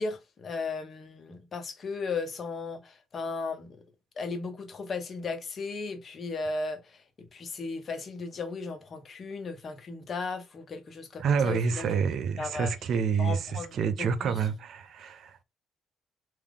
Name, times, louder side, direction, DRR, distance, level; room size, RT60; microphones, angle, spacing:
voice 1, 0.0-3.8 4.2-11.9 12.4-12.7 13.2-14.4, left 4 dB, 50° left, 1.0 m, -36 dB
voice 2, 11.2-13.4 13.7-15.4, right 6 dB, 70° right, 0.6 m, -28 dB
3.6 x 2.8 x 3.6 m
cardioid pair, 90°, 0 cm